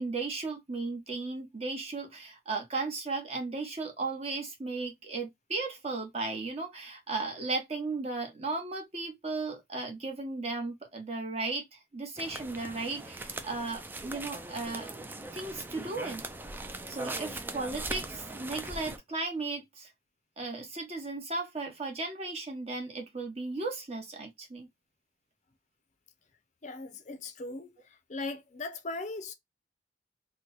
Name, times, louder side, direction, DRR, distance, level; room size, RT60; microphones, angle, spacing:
voice 1, 0.0-14.9 15.3-16.2 16.9-19.9 20.4-24.7, right 3 dB, 35° right, 1.0 m, -35 dB
sound 1, 12.2-19.0, right 2 dB, 10° right, 0.3 m, -40 dB
voice 2, 26.6-27.7 28.1-29.3, left 3 dB, 45° left, 0.5 m, -38 dB
3.0 x 2.2 x 3.7 m
head